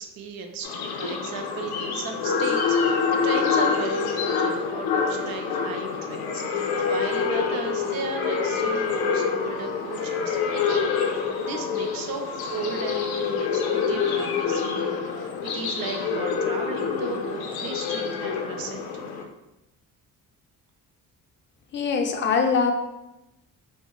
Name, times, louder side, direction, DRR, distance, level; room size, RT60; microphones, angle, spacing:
voice 1, 0.0-14.9 15.2-18.9, right 4 dB, 70° right, 4 dB, 0.5 m, -35 dB
sound 1, 0.6-19.2, left 6 dB, 85° left, 0.5 m, -26 dB
voice 2, 21.7-22.7, left 5 dB, 30° left, 3 dB, 0.4 m, -22 dB
4.4 x 2.0 x 2.3 m, 0.94 s
cardioid pair, 110°, 36 cm